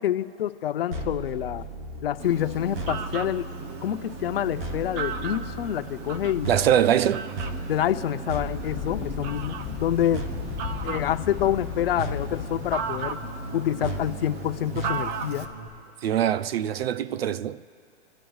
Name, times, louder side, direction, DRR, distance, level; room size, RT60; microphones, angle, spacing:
voice 1, 0.0-1.6 2.0-3.5 3.8-6.5 7.7-10.2 10.8-13.2 13.5-15.5, left 11 dB, 55° left, 0.8 m, -27 dB
sound 1, 0.9-15.7, right 1 dB, 45° right, 2.9 m, -36 dB
Fowl, 2.2-15.5, right 6 dB, 25° right, 0.8 m, -37 dB
voice 2, 6.5-7.3 16.0-17.6, right 10 dB, 60° right, 0.6 m, -23 dB
sound 2, 8.4-13.7, left 11 dB, 20° left, 4.3 m, -37 dB
28.0 x 14.5 x 2.4 m
hypercardioid pair, 150°, 35 cm